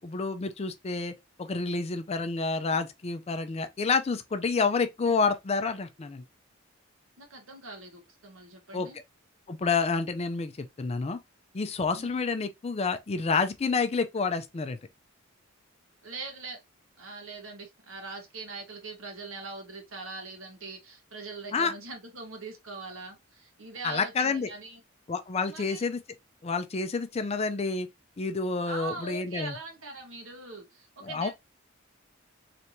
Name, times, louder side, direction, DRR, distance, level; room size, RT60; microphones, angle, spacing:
voice 1, 0.0-1.1 1.4-6.2 8.7-8.9 9.5-11.2 11.5-14.8 21.5-21.7 23.8-24.5 25.1-26.0 26.4-27.9 28.2-29.5 31.0-31.3, left 4 dB, 30° left, 0.4 m, -29 dB
voice 2, 7.2-9.0 11.9-12.1 16.0-16.6 17.0-24.8 25.4-25.8 28.7-31.3, right 3 dB, 75° right, 1.2 m, -42 dB
3.3 x 2.7 x 2.9 m
head